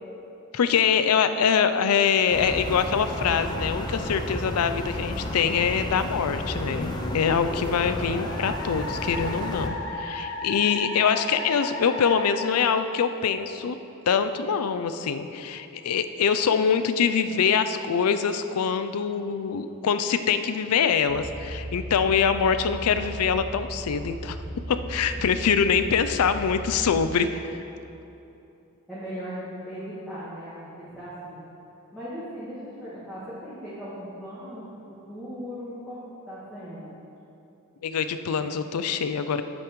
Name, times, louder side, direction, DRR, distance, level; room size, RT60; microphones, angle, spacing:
voice 1, 0.5-13.8 14.1-24.4 24.7-27.5 37.8-39.4, left 6 dB, 85° left, 10 dB, 0.4 m, -24 dB
sound 1, 2.3-9.7, left 1 dB, 20° left, 0.5 m, -32 dB
Musical instrument, 6.6-13.4, left 1 dB, 60° left, 0.9 m, -36 dB
sound 2, 21.1-27.1, right 1 dB, 35° right, 1.3 m, -37 dB
voice 2, 28.9-31.4 31.9-34.8 35.1-36.9, equal, ahead, -13 dB, 1.8 m, -38 dB
9.8 x 8.4 x 3.1 m, 2.9 s
head